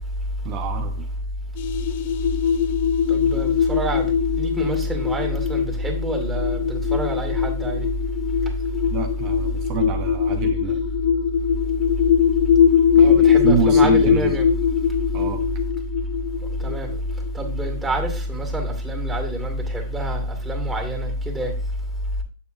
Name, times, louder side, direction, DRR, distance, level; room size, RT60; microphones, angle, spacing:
voice 1, 0.4-1.1 8.9-10.9 13.0-14.4 15.1-15.5, right 9 dB, 40° right, 0.9 m, -28 dB
sound 1, 1.6-17.9, left 7 dB, 55° left, 0.6 m, -21 dB
voice 2, 3.1-7.9 13.0-14.5 16.6-16.9 17.3-21.5, right 1 dB, 10° right, 2.2 m, -26 dB
8.3 x 6.9 x 2.6 m
hypercardioid pair, 115°, 0 cm